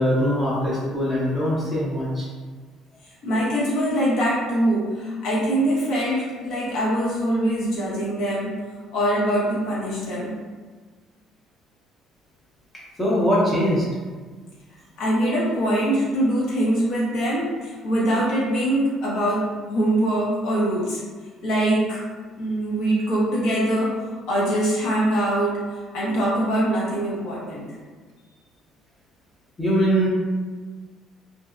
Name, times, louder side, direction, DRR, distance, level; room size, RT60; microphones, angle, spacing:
voice 1, 0.0-2.3 13.0-13.8 29.6-30.1, equal, 15° left, -7 dB, 0.6 m, -21 dB
voice 2, 3.0-8.5 8.9-10.3 15.0-21.0 21.4-22.1 22.4-27.7, right 1 dB, 65° left, -6 dB, 0.6 m, -23 dB
2.7 x 2.0 x 2.4 m, 1.4 s
cardioid pair, 140°, 0 cm